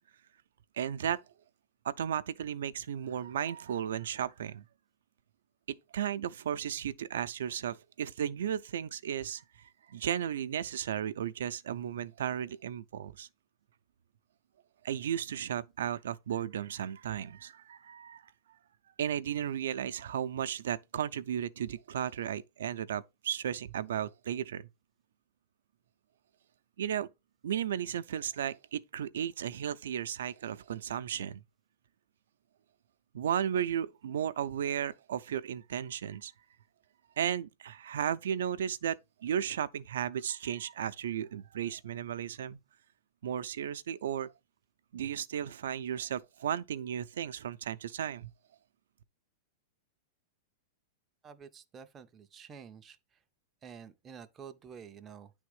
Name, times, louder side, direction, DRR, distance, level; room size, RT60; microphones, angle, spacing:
voice 1, 0.8-1.2 1.8-4.6 5.7-9.4 9.9-13.3 14.8-18.2 19.0-24.7 26.8-27.1 27.4-31.4 33.1-36.3 37.2-42.6 43.2-44.3 44.9-48.3, right 9 dB, 85° right, 0.5 m, -34 dB
voice 2, 51.2-53.0 53.6-55.3, right 7 dB, 15° right, 0.4 m, -49 dB
9.5 x 3.5 x 4.8 m
supercardioid pair, 180°, 0 cm